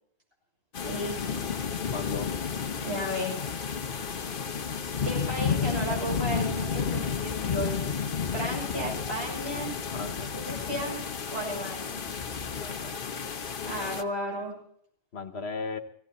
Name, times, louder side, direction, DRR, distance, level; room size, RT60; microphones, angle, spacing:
sound 1, 0.7-14.0, left 6 dB, 60° left, 1.0 m, -32 dB
voice 1, 0.8-1.4 2.8-3.4 5.0-7.9 8.3-9.7 10.3-11.0 11.3-12.0 13.7-14.5, equal, 90° right, -2 dB, 7.1 m, -34 dB
voice 2, 1.9-2.4 9.9-10.3 12.6-12.9 15.1-15.8, left 4 dB, 90° left, 8 dB, 1.5 m, -36 dB
18.0 x 17.0 x 4.2 m, 0.66 s
omnidirectional pair, 1.0 m